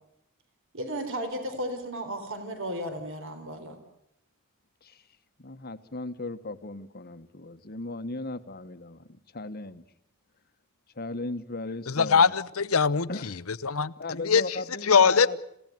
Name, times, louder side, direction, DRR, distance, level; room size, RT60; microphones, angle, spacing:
voice 1, 0.7-3.8, equal, 60° right, 4.0 m, -34 dB
voice 2, 5.4-9.8 10.9-12.4 13.1-13.4 14.0-15.4, left 2 dB, 45° left, 1.3 m, -37 dB
voice 3, 11.9-13.1 13.6-13.9 14.2-14.4 14.9-15.3, left 5 dB, 70° left, 0.9 m, -21 dB
27.5 x 17.0 x 9.5 m
head